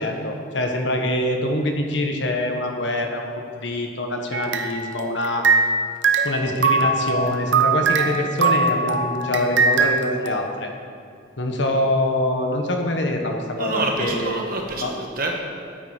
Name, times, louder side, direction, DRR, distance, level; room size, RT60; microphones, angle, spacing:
voice 1, 0.0-5.5 6.2-10.7 11.4-14.5 14.8-14.9, left 1 dB, 70° left, 3 dB, 1.3 m, -24 dB
sound 1, 4.3-5.8 6.0-10.3, right 4 dB, 70° right, 0.8 m, -21 dB
voice 2, 13.6-15.3, right 2 dB, 50° right, 0 dB, 1.5 m, -27 dB
13.0 x 9.0 x 4.4 m, 2.2 s
head